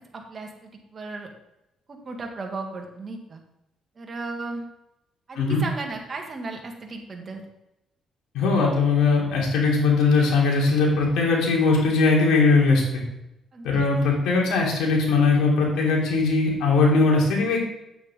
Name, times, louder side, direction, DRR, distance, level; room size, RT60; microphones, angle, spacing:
voice 1, 0.1-1.3 1.9-3.4 4.0-4.6 5.3-7.5 13.5-13.9, right 3 dB, 35° right, 2 dB, 2.0 m, -35 dB
voice 2, 8.3-12.8 13.6-17.6, left 3 dB, 85° left, -2 dB, 3.1 m, -20 dB
9.3 x 8.7 x 3.7 m, 0.88 s
cardioid pair, 100°, 0 cm